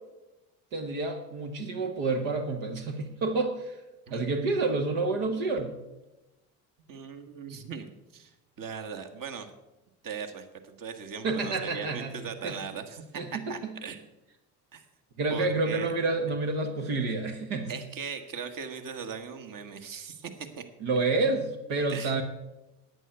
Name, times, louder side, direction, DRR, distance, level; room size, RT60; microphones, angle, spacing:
voice 1, 0.7-3.8 4.1-5.8 11.2-12.2 12.4-12.6 13.1-13.7 15.2-17.7 20.8-22.2, right 3 dB, 75° right, 4 dB, 1.3 m, -29 dB
voice 2, 6.9-9.5 10.0-14.0 14.7-14.8 15.3-15.9 17.7-20.6 21.9-22.1, right 6 dB, 45° right, 8 dB, 1.5 m, -39 dB
9.7 x 9.1 x 6.7 m, 1.0 s
hypercardioid pair, 55°, 44 cm